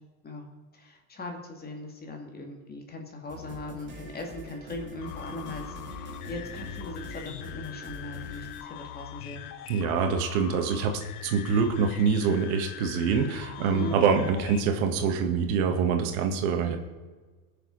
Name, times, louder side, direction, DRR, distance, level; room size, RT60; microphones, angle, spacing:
voice 1, 0.7-9.5 13.6-14.0, left 2 dB, 20° left, 2 dB, 2.4 m, -40 dB
sound 1, 3.3-8.6, right 1 dB, 25° right, 2.9 m, -44 dB
sound 2, 5.0-14.6, left 12 dB, 90° left, 0.9 m, -41 dB
voice 2, 9.7-16.8, right 6 dB, 75° right, 5 dB, 1.8 m, -25 dB
20.5 x 6.9 x 4.0 m, 1.4 s
supercardioid pair, 115°, 44 cm